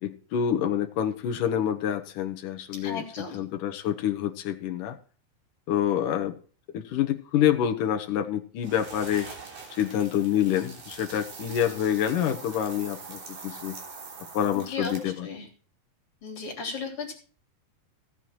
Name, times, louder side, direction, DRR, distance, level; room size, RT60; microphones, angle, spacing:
voice 1, 0.0-5.0 5.7-6.4 6.7-9.3 9.7-13.8 14.3-15.3, left 10 dB, 70° left, 6 dB, 2.7 m, -27 dB
voice 2, 2.8-3.4 14.5-15.5 16.2-17.1, left 4 dB, 40° left, 1 dB, 4.0 m, -35 dB
sound 1, 8.6-15.2, right 4 dB, 65° right, 5.0 m, -43 dB
16.0 x 8.2 x 4.5 m, 0.41 s
omnidirectional pair, 4.0 m